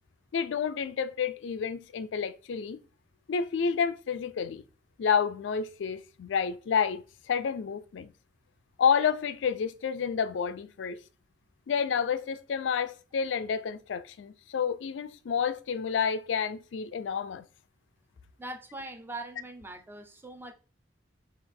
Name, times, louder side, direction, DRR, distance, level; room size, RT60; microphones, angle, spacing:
voice 1, 0.3-2.8 3.3-4.6 5.0-8.1 8.8-11.0 11.7-17.5, left 6 dB, 85° left, 0.4 m, -29 dB
voice 2, 18.4-20.5, right 2 dB, 10° right, 0.5 m, -41 dB
3.8 x 2.4 x 4.2 m
head